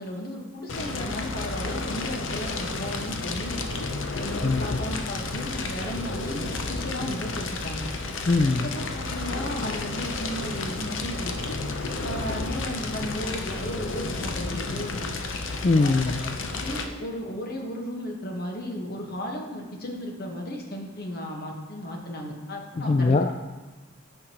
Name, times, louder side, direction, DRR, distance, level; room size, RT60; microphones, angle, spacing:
voice 1, 0.0-3.6 4.1-7.9 8.4-11.6 12.0-15.1 15.8-23.2, left 1 dB, 50° left, 1 dB, 1.3 m, -35 dB
Fire, 0.7-16.9, left 3 dB, 75° left, 0.7 m, -31 dB
voice 2, 8.3-8.7 15.6-16.2 22.8-23.3, left 3 dB, 35° left, 5 dB, 0.3 m, -21 dB
15.0 x 5.1 x 3.0 m, 1.2 s
head